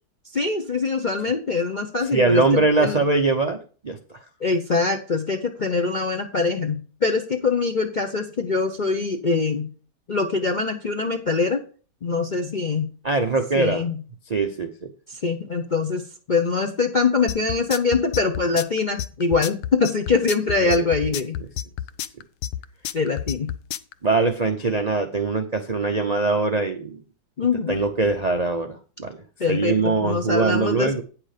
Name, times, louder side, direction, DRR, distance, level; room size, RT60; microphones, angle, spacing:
voice 1, 0.3-3.0 4.4-9.7 10.1-11.6 12.0-12.9 13.5-14.0 15.2-16.0 16.3-21.4 22.9-23.5 27.4-27.8 29.4-29.7 30.0-31.0, left 4 dB, 50° left, 3 dB, 0.5 m, -23 dB
voice 2, 2.1-3.6 3.8-4.0 13.0-13.9 14.3-14.7 20.6-20.9 21.4-21.5 24.0-27.0 27.7-29.1 29.5-31.0, right 3 dB, 50° right, 5 dB, 0.4 m, -22 dB
sound 1, 17.3-23.9, left 11 dB, 80° left, 1.2 m, -30 dB
9.1 x 6.1 x 5.0 m, 0.38 s
omnidirectional pair, 1.8 m